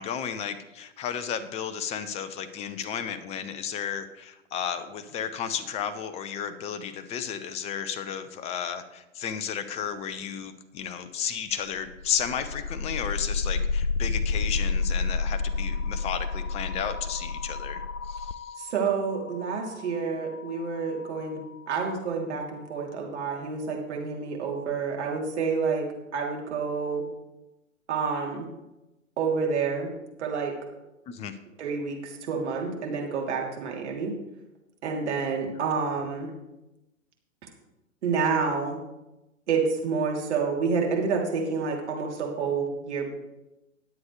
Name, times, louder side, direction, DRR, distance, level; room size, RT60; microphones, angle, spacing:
voice 1, 0.0-18.5 31.1-31.3, left 8 dB, 15° left, 13 dB, 0.6 m, -33 dB
sound 1, 11.8-21.7, left 4 dB, 90° left, 0.6 m, -31 dB
voice 2, 18.6-21.4 21.7-25.9 26.1-27.0 27.9-28.5 29.2-29.9 30.2-30.5 31.6-34.1 34.8-36.3 38.0-38.8 39.5-43.1, right 5 dB, 55° right, 0 dB, 3.1 m, -28 dB
20.0 x 7.9 x 3.2 m, 0.96 s
figure-of-eight pair, 115°, 40 cm